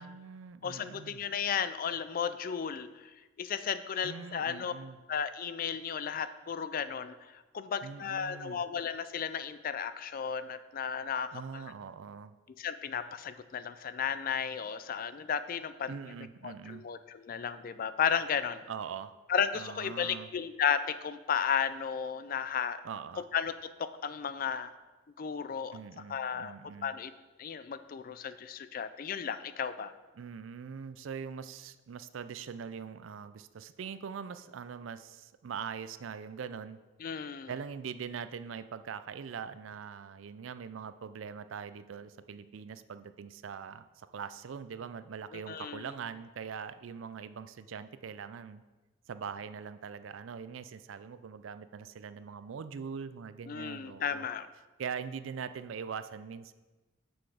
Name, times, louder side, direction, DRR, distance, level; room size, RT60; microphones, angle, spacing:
voice 1, 0.0-1.2 4.0-5.0 7.8-8.6 11.3-12.3 15.9-16.8 18.7-19.1 19.5-20.3 22.8-23.2 25.7-26.9 30.1-36.8 37.5-48.6 49.1-54.2 54.8-56.5, right 6 dB, 85° right, 13 dB, 0.4 m, -42 dB
voice 2, 0.6-3.1 3.4-4.7 5.1-11.7 12.6-15.9 16.4-18.6 19.3-22.8 23.3-23.5 23.8-24.7 25.2-25.8 26.1-26.5 26.8-27.1 27.4-29.9 37.0-37.5 45.3-45.9 53.5-54.5, left 7 dB, 45° left, 13 dB, 0.4 m, -34 dB
6.8 x 6.0 x 4.9 m, 1.2 s
head